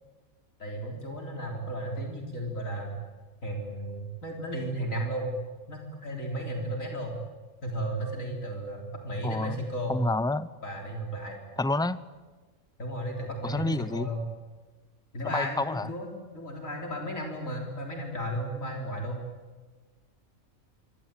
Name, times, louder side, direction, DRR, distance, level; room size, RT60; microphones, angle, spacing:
voice 1, 0.6-3.0 3.4-5.3 5.7-7.2 7.6-10.0 10.6-11.4 12.8-14.2 15.1-19.2, right 1 dB, 75° left, 1 dB, 4.2 m, -34 dB
voice 2, 9.2-9.6 9.9-10.5 11.6-12.0 13.4-14.1 15.2-15.9, left 2 dB, 5° left, 15 dB, 0.3 m, -28 dB
25.5 x 24.0 x 9.0 m, 1.3 s
omnidirectional pair, 1.4 m